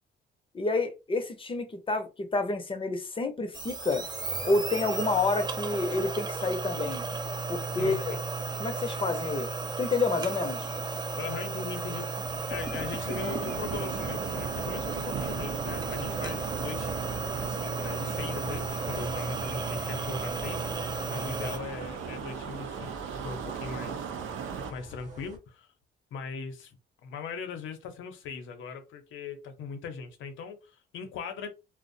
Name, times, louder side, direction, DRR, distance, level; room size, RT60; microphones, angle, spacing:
voice 1, 0.5-4.1 4.4-7.1 7.5-8.2 8.6-9.5 9.8-10.7, left 3 dB, 25° left, 0.6 m, -29 dB
sound 1, 3.5-21.6, right 3 dB, 20° right, 0.4 m, -34 dB
voice 2, 7.8-8.2 11.1-12.1 12.5-17.0 17.4-24.1 24.7-25.7 26.1-31.5, left 5 dB, 80° left, 0.6 m, -40 dB
sound 2, 12.2-25.4, right 2 dB, 40° right, 0.8 m, -44 dB
sound 3, 13.1-24.7, right 7 dB, 80° right, 0.5 m, -38 dB
2.4 x 2.0 x 2.6 m
cardioid pair, 90°, 20 cm